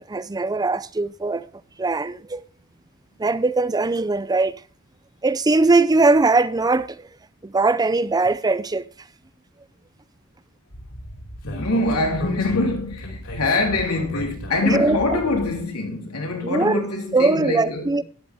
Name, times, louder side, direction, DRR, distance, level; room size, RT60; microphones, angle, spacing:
voice 1, 0.0-1.5 1.8-2.4 3.2-4.6 5.2-7.1 7.4-8.9 14.6-15.2 16.4-16.8 17.1-18.0, right 3 dB, 15° right, 0.5 m, -20 dB
Speech, 10.7-15.6, equal, 60° left, 5.2 m, -35 dB
voice 2, 11.4-17.9, left 2 dB, 85° left, 3.4 m, -24 dB
13.5 x 11.0 x 3.5 m
head